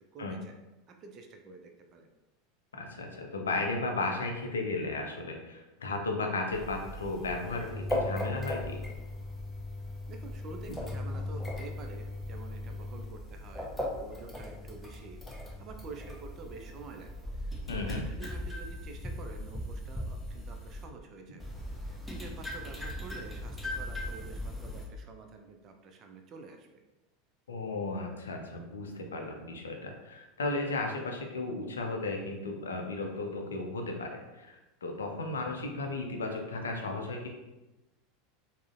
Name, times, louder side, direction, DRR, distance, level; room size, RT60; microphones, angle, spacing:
voice 1, 0.1-0.6 0.9-2.1 10.1-17.1 17.4-21.4 21.7-26.8, right 4 dB, 35° right, 4 dB, 0.4 m, -48 dB
voice 2, 2.7-8.8 17.7-18.0 27.5-34.6 34.8-37.3, left 3 dB, 70° left, 3 dB, 0.4 m, -35 dB
sound 1, 6.5-20.8 21.4-24.9, left 1 dB, 5° left, 0.6 m, -38 dB
3.6 x 2.0 x 2.5 m, 1.0 s
figure-of-eight pair, 80°, 0 cm